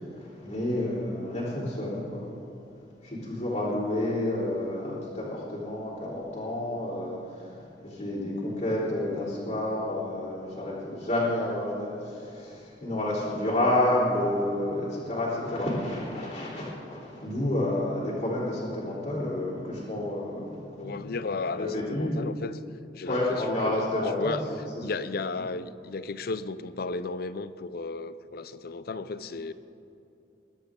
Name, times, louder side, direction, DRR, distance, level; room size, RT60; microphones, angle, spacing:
voice 1, 0.0-2.3 3.0-21.2 21.5-22.2 23.1-24.6, left 1 dB, 45° left, -10 dB, 3.7 m, -30 dB
voice 2, 20.8-22.6 22.9-23.8 24.2-24.4 24.8-29.5, left 3 dB, 60° left, 14 dB, 0.6 m, -34 dB
22.5 x 11.5 x 3.8 m, 2.8 s
head